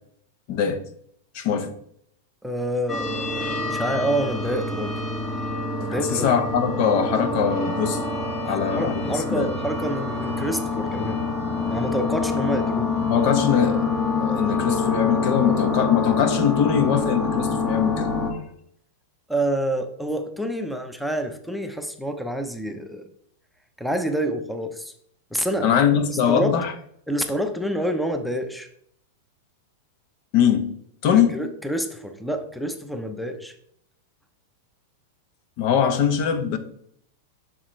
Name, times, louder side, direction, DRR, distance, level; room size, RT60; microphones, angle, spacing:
voice 1, 0.5-0.8 1.3-1.7 5.9-8.1 8.5-9.5 13.1-13.9 14.2-18.1 25.6-26.7 30.3-30.7 31.0-31.4 35.6-36.6, left 8 dB, 50° left, 1.0 m, -22 dB
voice 2, 2.4-5.0 5.8-6.3 8.4-11.2 11.7-12.9 19.3-23.1 23.8-24.9 25.3-26.6 27.1-28.7 31.1-33.5, right 1 dB, ahead, 0.7 m, -28 dB
sound 1, 2.9-18.3, left 3 dB, 30° left, 1.7 m, -26 dB
7.4 x 6.2 x 3.2 m
hypercardioid pair, 115°, 0 cm